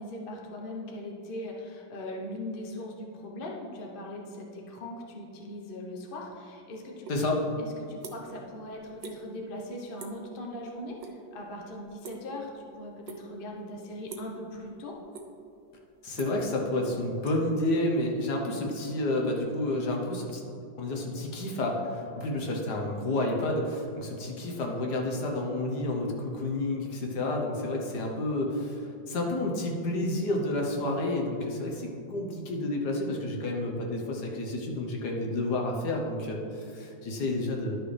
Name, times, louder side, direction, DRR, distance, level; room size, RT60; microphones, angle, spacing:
voice 1, 0.0-7.1 7.6-15.0, left 1 dB, 40° left, -1 dB, 0.8 m, -40 dB
sound 1, 7.0-7.2 7.6-8.4 8.7-9.2 9.5-9.7 10.0-10.3 10.6-11.2 11.4-12.6 13.0-13.5 14.1-14.4 14.8-15.5 15.8-18.1, right 5 dB, 75° right, 1.5 m, -44 dB
voice 2, 7.1-7.4 16.0-37.8, left 1 dB, 60° left, 0 dB, 1.5 m, -30 dB
11.5 x 6.2 x 3.3 m, 2.6 s
omnidirectional pair, 2.1 m